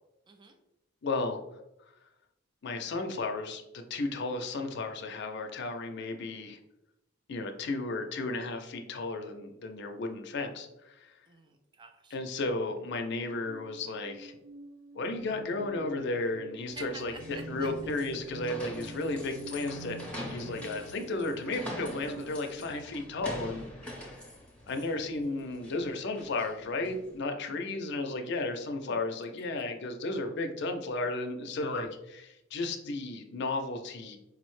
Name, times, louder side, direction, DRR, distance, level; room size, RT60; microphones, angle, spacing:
voice 1, 0.3-0.6 11.3-12.2 16.7-17.7 23.9-24.1 29.4-29.6, right 4 dB, 25° right, 5 dB, 0.4 m, -49 dB
voice 2, 1.0-1.4 2.6-6.6 7.3-11.2 12.1-14.4 14.9-20.0 20.3-24.1 24.7-34.2, left 2 dB, 60° left, 5 dB, 0.5 m, -34 dB
sound 1, 13.3-22.8, right 2 dB, 70° right, 1.1 m, -47 dB
sound 2, 16.7-27.1, left 1 dB, 5° left, 0.8 m, -44 dB
4.8 x 2.1 x 3.1 m, 0.90 s
head